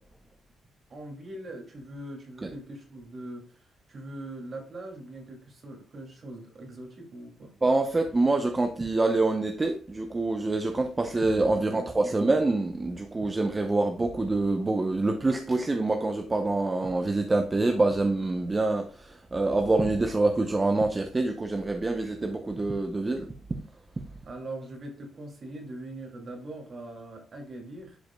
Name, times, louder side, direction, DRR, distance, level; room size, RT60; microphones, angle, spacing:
voice 1, 0.9-7.5 11.5-12.2 24.2-28.0, right 1 dB, 45° right, 2.5 m, -42 dB
voice 2, 7.6-23.6, right 2 dB, 25° right, 0.7 m, -26 dB
10.5 x 5.0 x 2.3 m
cardioid pair, 90°, 0 cm